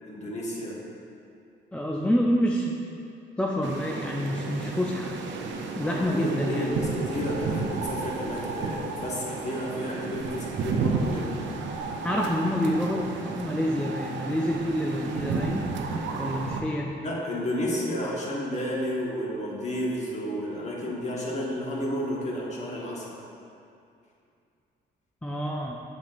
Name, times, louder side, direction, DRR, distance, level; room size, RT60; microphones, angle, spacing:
voice 1, 0.0-0.8 5.8-11.4 17.0-23.1, equal, 35° left, -4 dB, 1.5 m, -31 dB
voice 2, 1.7-2.8 3.4-5.2 5.7-6.8 12.0-15.7 16.2-16.9 25.2-25.8, equal, 5° left, -1 dB, 0.4 m, -27 dB
sound 1, 3.6-16.6, right 4 dB, 70° right, 0.6 m, -32 dB
7.4 x 5.8 x 2.6 m, 2.5 s
cardioid pair, 90°, 20 cm